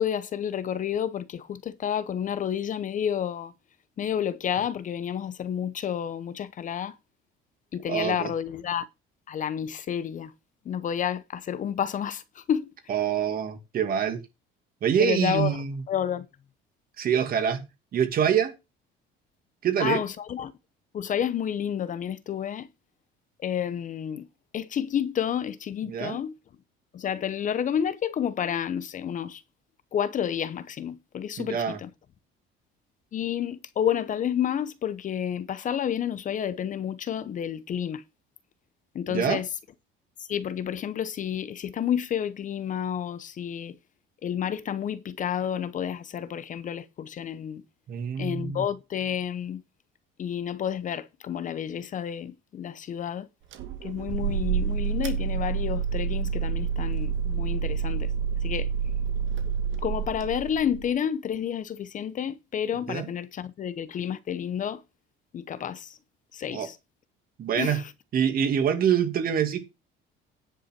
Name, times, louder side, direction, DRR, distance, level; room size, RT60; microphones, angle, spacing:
voice 1, 0.0-3.5 4.0-7.0 7.7-8.9 9.3-10.3 10.6-12.7 15.0-16.3 19.8-20.5 20.9-22.7 23.4-24.3 24.5-26.3 26.9-29.4 29.9-31.9 33.1-38.0 38.9-39.5 40.2-43.8 44.2-47.6 48.2-49.6 50.2-53.3 53.8-58.1 58.4-58.7 59.8-64.8 65.3-66.0 66.3-66.8 67.5-67.9, left 9 dB, 40° left, 0.8 m, -30 dB
voice 2, 7.9-8.3 12.9-14.2 14.8-15.8 17.0-17.6 17.9-18.5 19.6-20.0 25.9-26.2 31.4-31.8 39.1-39.4 47.9-48.6 62.9-63.0 66.5-66.7 67.4-67.8 68.1-69.6, right 8 dB, 45° right, 2.4 m, -25 dB
sound 1, 53.5-60.9, right 7 dB, 65° right, 2.2 m, -28 dB
10.0 x 5.8 x 5.9 m
cardioid pair, 145°, 21 cm